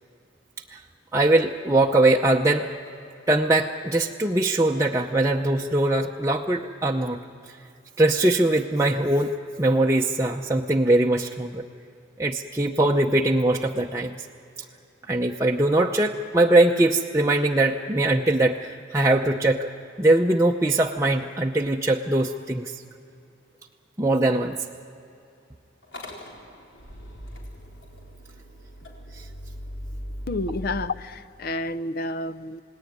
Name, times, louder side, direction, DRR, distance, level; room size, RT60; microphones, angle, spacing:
voice 1, 1.1-2.7 3.3-7.2 7.5-7.6 8.0-11.6 12.2-14.1 15.1-19.7 20.0-22.8 24.0-24.6 29.1-29.3, right 2 dB, 15° right, 0 dB, 0.7 m, -21 dB
Motor vehicle (road) / Engine starting, 25.8-30.9, equal, 70° left, 4.4 m, -39 dB
voice 2, 30.3-32.6, left 2 dB, 50° left, 14 dB, 0.6 m, -30 dB
28.5 x 18.5 x 9.5 m, 2.8 s
head